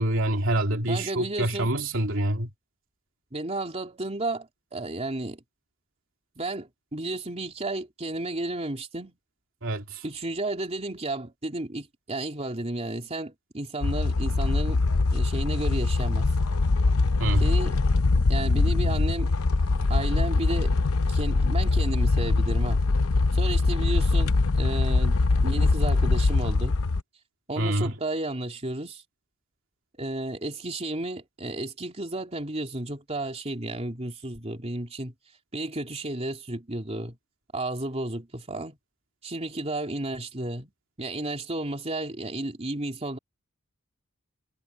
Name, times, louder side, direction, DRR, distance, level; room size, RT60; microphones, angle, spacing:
voice 1, 0.0-2.5 9.6-10.0 17.2-17.5 27.6-27.9, right 1 dB, 65° right, 3.1 m, -26 dB
voice 2, 0.9-1.7 3.3-5.4 6.4-9.2 10.0-14.8 15.1-16.3 17.4-17.8 18.3-19.3 19.9-20.7 21.1-22.8 23.3-25.2 25.4-26.8 27.5-29.0 30.0-35.1 35.5-37.2 37.5-38.8 39.2-40.7 41.0-43.2, right 2 dB, 30° right, 3.2 m, -32 dB
sound 1, 13.8-27.0, left 3 dB, 85° left, 0.7 m, -23 dB
head